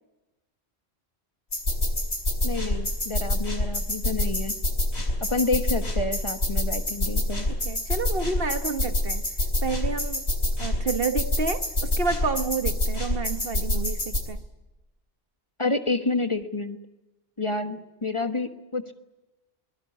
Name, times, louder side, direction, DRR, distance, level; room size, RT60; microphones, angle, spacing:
sound 1, 1.5-14.2, left 1 dB, 75° left, 5.1 m, -26 dB
voice 1, 2.4-4.6 5.2-7.5 15.6-16.8 17.4-18.9, left 3 dB, 30° left, 1.4 m, -29 dB
voice 2, 7.5-9.2 9.6-10.3 10.6-14.4, right 4 dB, 60° right, 1.5 m, -30 dB
22.5 x 21.5 x 9.5 m
omnidirectional pair, 1.1 m